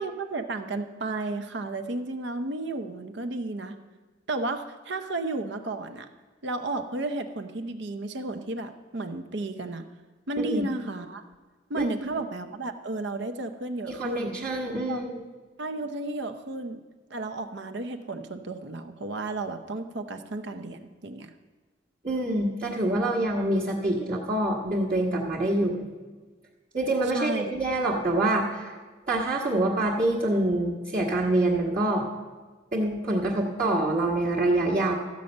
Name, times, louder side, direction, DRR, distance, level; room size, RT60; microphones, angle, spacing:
voice 1, 0.0-3.8 4.3-6.1 6.4-9.9 10.3-11.2 11.7-14.4 14.9-15.1 15.6-16.8 17.1-21.3 27.1-27.5, right 2 dB, 60° right, 8 dB, 0.7 m, -33 dB
voice 2, 11.7-12.2 13.9-15.1 22.0-25.8 26.7-28.7 29.1-32.1 32.7-34.9, right 1 dB, 40° right, -7 dB, 1.3 m, -26 dB
13.5 x 5.3 x 7.8 m, 1.3 s
head